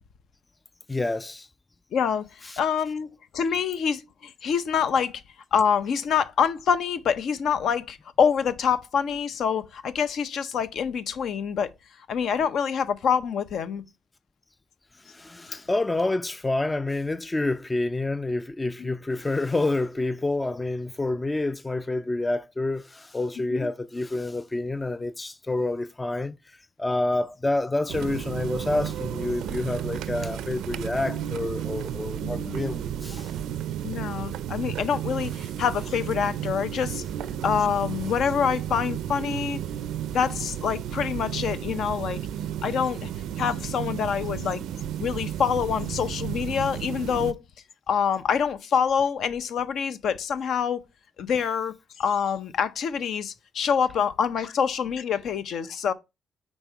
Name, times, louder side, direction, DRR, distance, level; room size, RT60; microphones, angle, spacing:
voice 1, 0.9-1.5 2.4-2.6 15.0-33.3, left 2 dB, 15° left, 0.3 m, -28 dB
voice 2, 1.9-3.1 3.3-5.2 5.5-11.7 12.1-13.8 15.5-15.6 18.8-18.9 23.5-23.7 32.2-32.6 33.8-37.0 37.4-39.6 40.1-42.2 42.6-43.1 43.4-44.6 45.0-47.4 47.9-50.8 51.2-55.9, left 7 dB, 70° left, 0.6 m, -26 dB
sound 1, 27.9-47.3, right 10 dB, 80° right, 0.4 m, -33 dB
5.3 x 4.1 x 4.5 m
cardioid pair, 90°, 0 cm